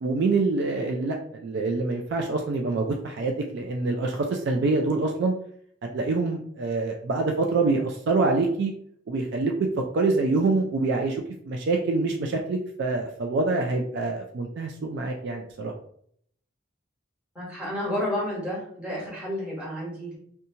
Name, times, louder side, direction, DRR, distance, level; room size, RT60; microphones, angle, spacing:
voice 1, 0.0-5.3 5.9-8.7 9.1-9.5 9.9-15.7, right 3 dB, 55° right, 2 dB, 0.3 m, -26 dB
voice 2, 17.3-20.2, left 1 dB, 5° right, -7 dB, 1.1 m, -31 dB
2.8 x 2.2 x 2.7 m, 0.64 s
head